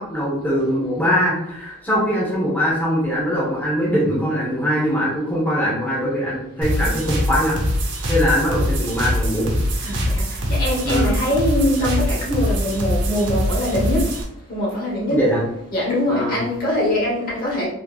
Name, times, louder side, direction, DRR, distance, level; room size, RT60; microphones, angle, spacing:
voice 1, 0.0-7.6 8.1-9.5 10.8-11.2 15.1-15.4 16.1-16.4, equal, 10° left, -7 dB, 1.0 m, -21 dB
sound 1, 6.6-14.2, equal, 55° right, 0.7 m, -23 dB
voice 2, 9.8-14.1 14.5-15.2 15.7-17.7, left 1 dB, 40° left, -5 dB, 1.2 m, -22 dB
3.8 x 3.1 x 2.4 m, 0.79 s
head